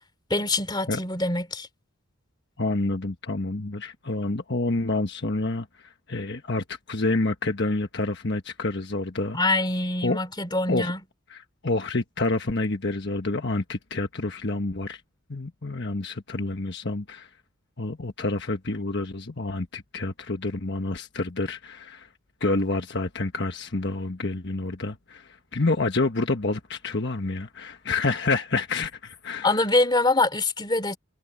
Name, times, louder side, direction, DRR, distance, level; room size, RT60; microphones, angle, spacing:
voice 1, 0.3-1.7 9.3-11.0 29.4-31.0, left 2 dB, 20° left, 2.9 m, -24 dB
voice 2, 2.6-9.4 10.0-10.2 10.7-10.9 11.3-15.0 15.3-17.3 17.8-22.1 22.4-29.6, left 2 dB, 50° left, 1.3 m, -28 dB
head